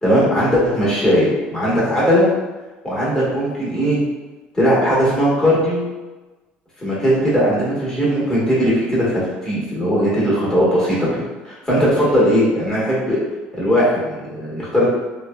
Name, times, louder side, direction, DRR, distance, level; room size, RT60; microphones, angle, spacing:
voice 1, 0.0-2.3 2.8-4.0 4.5-5.8 6.8-11.1 11.4-13.2 13.5-14.9, equal, 15° left, -8 dB, 1.1 m, -18 dB
2.8 x 2.0 x 2.2 m, 1.2 s
supercardioid pair, 100°, 4 cm